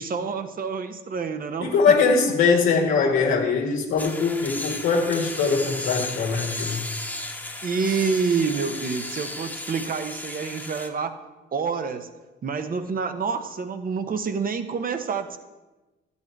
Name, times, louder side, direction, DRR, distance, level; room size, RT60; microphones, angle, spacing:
voice 1, 0.0-2.1 7.6-11.2 11.5-12.1 12.4-15.4, right 5 dB, 45° right, 9 dB, 1.0 m, -28 dB
voice 2, 1.6-6.8, left 5 dB, 85° left, -2 dB, 1.7 m, -21 dB
sound 1, 4.0-10.9, left 2 dB, 10° left, 1.2 m, -35 dB
12.0 x 8.4 x 4.6 m, 1.1 s
cardioid pair, 90°, 20 cm